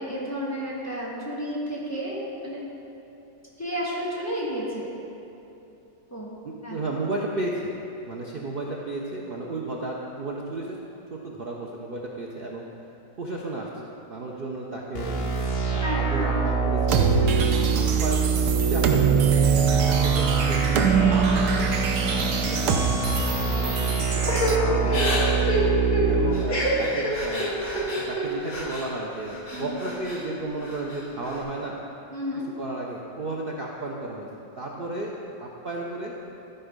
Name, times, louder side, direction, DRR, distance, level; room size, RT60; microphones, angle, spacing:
voice 1, 0.0-2.6 3.6-4.9 6.1-6.3 6.6-6.8 15.8-16.3 17.2-17.4 17.7-17.9 29.5-29.8 32.1-32.5, equal, 10° left, -6 dB, 1.3 m, -31 dB
voice 2, 6.4-7.8 8.0-10.8 11.1-12.7 13.2-15.2 15.7-17.1 17.3-18.3 18.7-19.4 19.7-21.5 22.0-25.3 26.1-27.6 27.9-31.8 32.6-34.3 34.6-35.1 35.4-36.1, right 2 dB, 60° right, -3 dB, 0.5 m, -33 dB
sound 1, 14.9-26.2, right 5 dB, 60° left, 1.7 m, -25 dB
sound 2, 16.9-24.6, right 6 dB, 85° right, 1.3 m, -24 dB
Crying sobbing / Breathing, 24.3-28.9 29.2-30.2 30.6-31.4, equal, 35° left, 1.6 m, -27 dB
13.0 x 4.4 x 5.2 m, 2.9 s
omnidirectional pair, 1.8 m